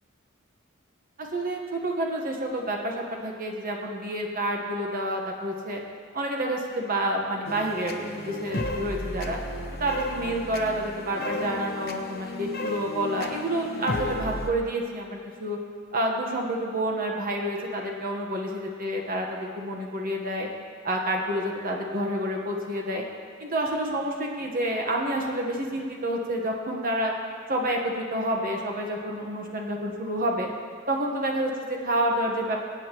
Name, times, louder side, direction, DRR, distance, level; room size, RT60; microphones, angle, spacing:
voice 1, 1.2-5.8 6.1-9.4 9.8-15.6 15.9-20.5 20.8-23.0 23.4-27.1 27.5-30.5 30.9-32.6, right 1 dB, 45° right, 0 dB, 1.2 m, -29 dB
sound 1, 7.4-14.5, left 1 dB, 50° left, 0.9 m, -34 dB
24.5 x 8.9 x 3.0 m, 2.2 s
head